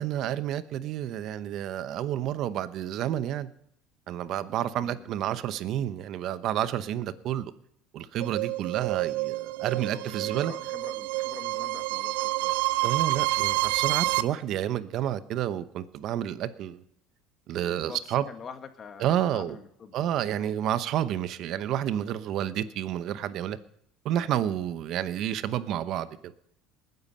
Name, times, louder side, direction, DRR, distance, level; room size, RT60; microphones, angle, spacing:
voice 1, 0.0-3.5 4.1-7.5 7.9-10.5 12.8-16.8 17.5-18.2 19.0-19.6 19.9-23.6 24.0-26.3, right 11 dB, 55° right, 0.9 m, -30 dB
voice 2, 4.8-5.1 9.6-12.6 17.7-20.5 24.2-24.5, left 6 dB, 35° left, 1.8 m, -46 dB
sound 1, 8.2-14.2, right 20 dB, 85° right, 0.5 m, -28 dB
20.0 x 9.6 x 5.5 m
supercardioid pair, 120°, 0 cm